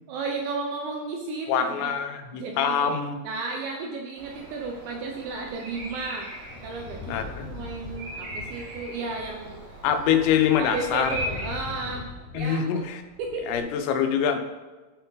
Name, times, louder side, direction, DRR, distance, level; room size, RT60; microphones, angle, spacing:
voice 1, 0.1-2.0 2.3-2.9 3.2-6.3 6.6-9.8 10.6-12.8 13.2-13.6, right 3 dB, 85° right, 1 dB, 2.5 m, -34 dB
voice 2, 1.5-3.2 7.1-7.5 9.8-11.2 12.4-13.0 13.5-14.4, left 8 dB, 90° left, 6 dB, 3.4 m, -24 dB
Bird vocalization bird call bird song, 4.2-11.5, right 1 dB, 55° right, 2.7 m, -39 dB
sound 1, 6.5-12.4 12.7-13.6, left 4 dB, 70° left, 3.3 m, -41 dB
13.0 x 4.5 x 4.0 m, 1.2 s
omnidirectional pair, 5.9 m